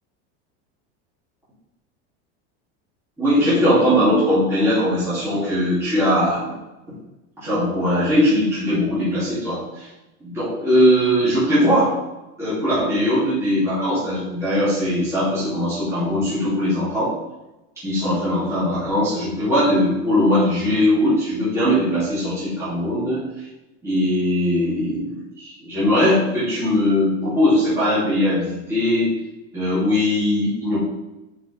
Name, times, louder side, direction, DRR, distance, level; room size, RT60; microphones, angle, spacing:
voice 1, 3.2-6.4 7.4-9.9 10.2-12.0 12.4-17.2 17.8-23.2 23.8-29.1 29.5-30.8, left 1 dB, 10° right, -12 dB, 2.6 m, -20 dB
11.5 x 5.0 x 3.4 m, 0.99 s
supercardioid pair, 175°, 34 cm